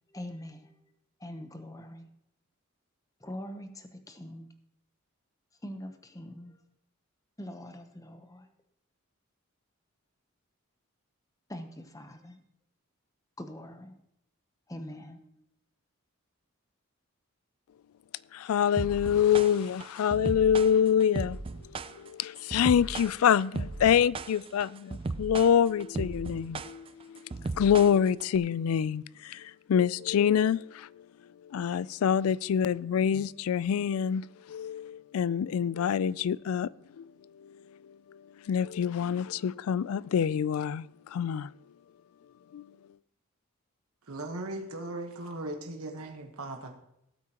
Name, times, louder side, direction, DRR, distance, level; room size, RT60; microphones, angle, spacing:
voice 1, 0.1-0.9 1.2-2.1 3.2-4.5 5.6-6.6 7.4-8.5 11.5-12.4 13.4-14.0 14.7-15.4, left 1 dB, 15° left, 0.8 m, -43 dB
voice 2, 18.3-21.4 22.0-27.2 27.6-30.9 31.4-36.7 37.0-37.1 37.4-37.5 38.1-38.2 38.5-41.5 42.5-42.6, left 8 dB, 80° left, 0.3 m, -26 dB
sound 1, 18.8-28.4, right 3 dB, 25° right, 0.3 m, -36 dB
voice 3, 44.1-46.7, right 2 dB, 80° right, 1.3 m, -38 dB
18.0 x 8.3 x 2.9 m
head